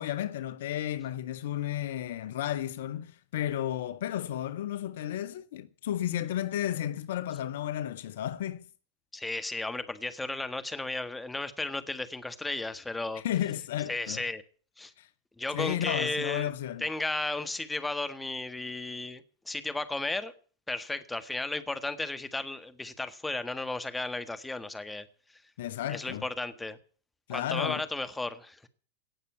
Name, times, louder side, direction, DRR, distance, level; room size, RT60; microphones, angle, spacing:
voice 1, 0.0-8.7 13.1-14.2 15.0-15.1 15.5-16.8 25.6-26.3 27.3-27.8, left 11 dB, 65° left, 0.7 m, -33 dB
voice 2, 9.1-13.2 13.9-14.4 14.8-14.9 15.4-16.5 16.8-20.3 20.7-25.0 25.9-26.8 27.3-28.7, left 2 dB, 10° left, 1.5 m, -34 dB
18.0 x 6.7 x 9.5 m
figure-of-eight pair, 90°, 0 cm